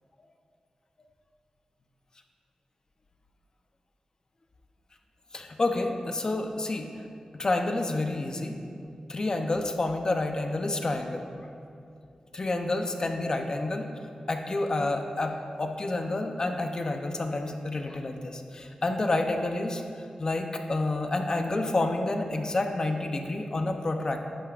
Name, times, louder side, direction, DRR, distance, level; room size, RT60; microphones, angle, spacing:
voice 1, 5.3-6.9 7.3-8.6 9.1-11.3 12.3-13.9 14.3-19.8 20.2-24.3, left 2 dB, 35° left, 4 dB, 0.6 m, -29 dB
10.5 x 10.0 x 2.5 m, 2.5 s
wide cardioid pair, 130°, 2 cm